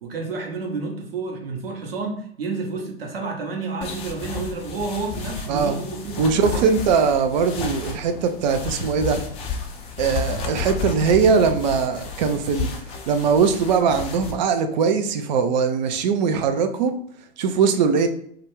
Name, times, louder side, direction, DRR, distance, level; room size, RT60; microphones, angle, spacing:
voice 1, 0.0-6.8, right 3 dB, 70° right, 1 dB, 0.8 m, -30 dB
sound 1, 3.8-14.3, left 5 dB, 20° left, 0.4 m, -32 dB
voice 2, 6.2-9.2 10.0-12.7 13.1-16.9 17.4-18.1, right 5 dB, 50° right, 7 dB, 0.4 m, -20 dB
2.4 x 2.2 x 3.0 m, 0.65 s
figure-of-eight pair, 100°, 31 cm